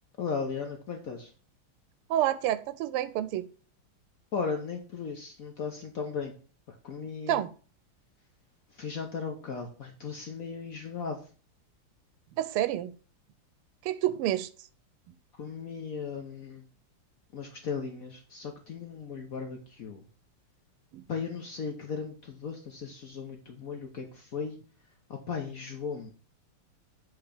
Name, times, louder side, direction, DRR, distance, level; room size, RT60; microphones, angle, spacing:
voice 1, 0.2-1.3 4.3-6.3 6.7-7.4 8.7-11.2 15.4-16.6 17.3-20.0 21.1-24.6 25.1-26.1, left 5 dB, 55° left, 4 dB, 1.0 m, -36 dB
voice 2, 2.1-3.5 7.3-7.5 12.4-12.9 13.8-14.5 20.9-21.0, right 12 dB, 90° right, 14 dB, 1.5 m, -28 dB
7.9 x 3.5 x 4.9 m, 0.39 s
omnidirectional pair, 2.4 m